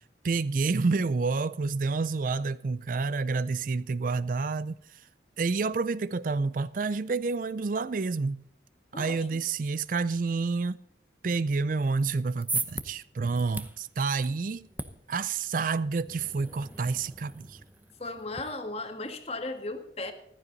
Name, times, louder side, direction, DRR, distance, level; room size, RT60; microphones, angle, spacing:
voice 1, 0.2-5.1 5.4-8.4 8.9-10.8 11.2-14.7 15.1-17.6, right 4 dB, 45° right, 0.4 m, -29 dB
voice 2, 8.9-9.4 18.0-20.1, left 2 dB, 35° left, 1.7 m, -36 dB
sound 1, 12.1-18.4, right 3 dB, 10° right, 0.8 m, -39 dB
15.0 x 14.0 x 4.0 m
head